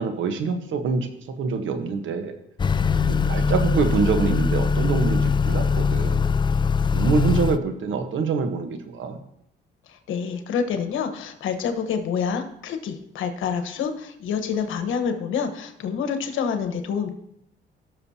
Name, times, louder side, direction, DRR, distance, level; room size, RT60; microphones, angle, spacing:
voice 1, 0.0-2.4 3.1-6.3 6.9-9.2, right 5 dB, 80° right, 7 dB, 1.3 m, -25 dB
Motor vehicle (road) / Accelerating revving vroom, 2.6-7.6, left 5 dB, 25° left, 0.3 m, -22 dB
voice 2, 9.9-17.1, left 6 dB, 85° left, 7 dB, 1.3 m, -27 dB
18.0 x 6.6 x 2.9 m, 0.77 s
cardioid pair, 90°, 20 cm